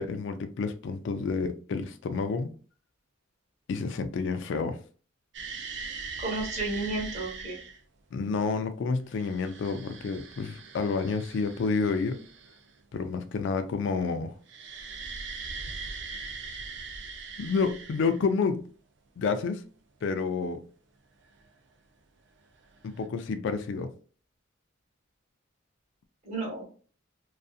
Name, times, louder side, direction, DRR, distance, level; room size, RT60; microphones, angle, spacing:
voice 1, 0.0-2.5 3.7-4.8 8.1-12.2 12.9-14.4 17.4-18.6 19.2-19.6 20.0-20.6 22.8-23.9, left 4 dB, 60° left, 0.3 m, -29 dB
sound 1, 5.3-7.8 9.0-12.8 14.5-18.4 21.4-21.5 22.7-23.1, right 4 dB, 60° right, 0.4 m, -41 dB
voice 2, 6.2-7.6 26.2-26.6, right 2 dB, 35° right, 1.1 m, -32 dB
2.6 x 2.4 x 2.4 m
head